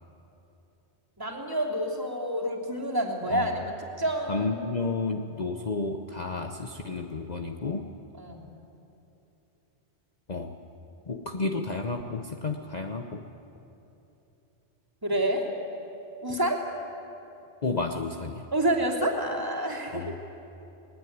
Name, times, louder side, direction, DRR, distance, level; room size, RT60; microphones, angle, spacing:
voice 1, 1.2-3.7 4.0-4.6 8.2-8.4 15.0-15.5 16.2-16.7 18.5-20.1, right 1 dB, 20° right, -2 dB, 3.0 m, -28 dB
voice 2, 4.3-7.9 10.3-10.6 11.1-13.3 16.3-16.4 17.6-18.4 19.9-20.1, left 3 dB, 40° left, 4 dB, 1.0 m, -31 dB
20.5 x 20.0 x 9.5 m, 2.9 s
omnidirectional pair, 1.2 m